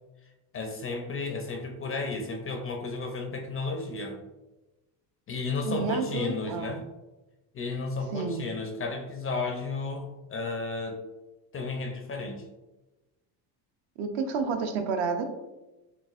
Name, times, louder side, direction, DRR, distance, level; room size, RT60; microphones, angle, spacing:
voice 1, 0.5-4.2 5.3-6.8 7.5-11.0 11.5-12.4, left 3 dB, 30° left, 4 dB, 0.4 m, -33 dB
voice 2, 5.6-6.8 8.1-8.4 14.0-15.3, right 5 dB, 65° right, 6 dB, 0.7 m, -30 dB
6.2 x 2.4 x 2.4 m, 1.1 s
cardioid pair, 115°, 48 cm